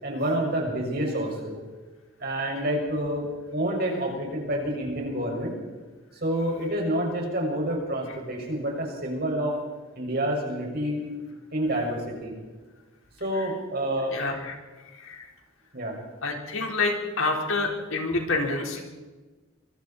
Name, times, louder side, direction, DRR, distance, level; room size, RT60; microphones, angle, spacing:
voice 1, 0.0-1.6 2.2-5.5 6.2-9.6 10.0-11.0 11.5-12.3 13.2-14.2 15.7-16.0, right 1 dB, 50° right, 0 dB, 6.2 m, -28 dB
voice 2, 14.1-14.6 14.9-15.3 16.2-18.8, left 3 dB, 80° left, 1 dB, 4.4 m, -28 dB
24.5 x 24.5 x 4.4 m, 1.3 s
head